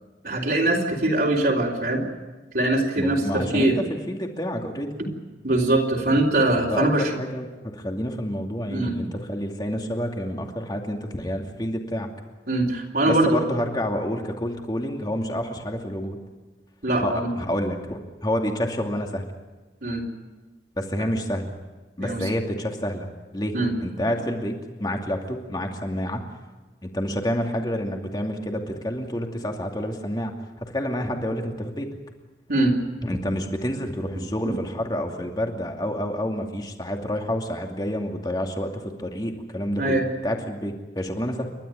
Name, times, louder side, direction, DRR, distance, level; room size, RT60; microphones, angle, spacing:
voice 1, 0.2-2.0 2.5-3.8 5.0-5.1 5.4-7.1 8.7-8.9 12.5-13.4 16.8-17.3 19.8-20.0 22.0-22.3 23.5-23.7 32.5-32.8 34.4-34.5 39.8-40.0, right 2 dB, 55° right, -2 dB, 3.9 m, -22 dB
voice 2, 3.0-5.0 6.7-12.1 13.0-16.2 17.0-19.3 20.8-21.5 22.0-23.1 23.3-23.5 23.8-26.3 26.8-30.3 30.6-32.0 33.0-40.0 40.2-41.5, equal, 25° left, 2 dB, 2.5 m, -28 dB
29.5 x 13.0 x 9.3 m, 1.2 s
head